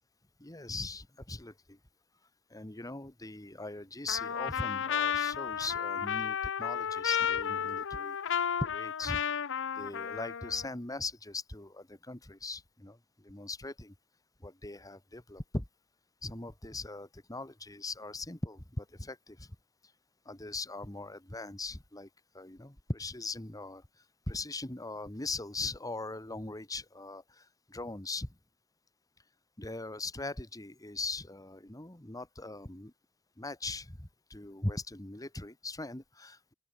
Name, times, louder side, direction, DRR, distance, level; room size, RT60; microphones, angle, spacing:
voice 1, 0.4-1.8 2.5-9.2 9.8-13.9 14.4-15.6 16.2-19.5 20.2-22.1 22.3-23.8 24.3-28.3 29.6-32.9 33.4-36.5, left 2 dB, 15° left, 1.5 m, -40 dB
Trumpet, 4.1-10.7, left 8 dB, 60° left, 0.8 m, -33 dB
open air
head